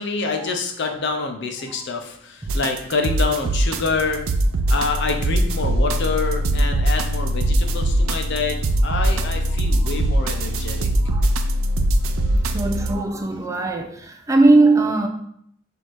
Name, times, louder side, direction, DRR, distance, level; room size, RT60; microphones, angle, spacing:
voice 1, 0.0-4.2 4.7-8.6 8.8-10.9, left 4 dB, 60° left, 0.6 m, -26 dB
sound 1, 2.5-13.0, right 1 dB, 90° right, 0.4 m, -21 dB
voice 2, 12.3-15.1, right 2 dB, 15° right, 0.4 m, -19 dB
6.3 x 2.7 x 3.1 m
head